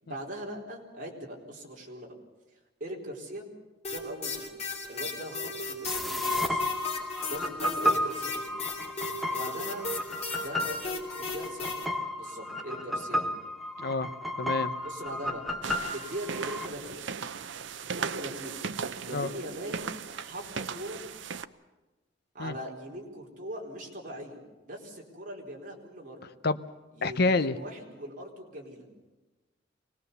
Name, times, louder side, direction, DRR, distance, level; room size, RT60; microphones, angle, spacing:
voice 1, 0.0-2.1 2.8-3.4 3.9-4.5 4.9-6.7 7.2-8.4 9.2-9.8 10.3-13.3 14.8-15.4 15.9-17.2 17.9-18.6 19.0-19.9 20.2-21.0 22.3-26.3 26.9-28.9, right 1 dB, 45° right, -2 dB, 4.2 m, -41 dB
sound 1, 3.8-11.9, left 3 dB, 35° left, 3.4 m, -36 dB
sound 2, 5.8-16.7, left 1 dB, ahead, 1.3 m, -33 dB
voice 2, 13.8-14.1 14.4-14.7 19.1-19.3 22.4-22.5 26.4-26.6 27.0-27.5, left 3 dB, 55° left, 10 dB, 0.8 m, -27 dB
sound 3, 15.6-21.4, right 6 dB, 70° right, 0.7 m, -37 dB
24.5 x 19.0 x 6.9 m, 1.2 s
head